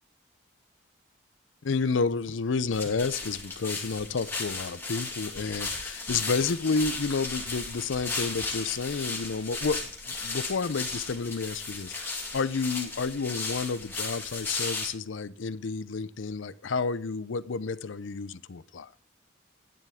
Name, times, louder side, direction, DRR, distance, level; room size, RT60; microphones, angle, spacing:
voice 1, 1.6-18.9, left 4 dB, 85° left, 0.6 m, -30 dB
sound 1, 2.7-14.9, left 3 dB, 10° left, 2.6 m, -35 dB
12.0 x 10.0 x 3.6 m
head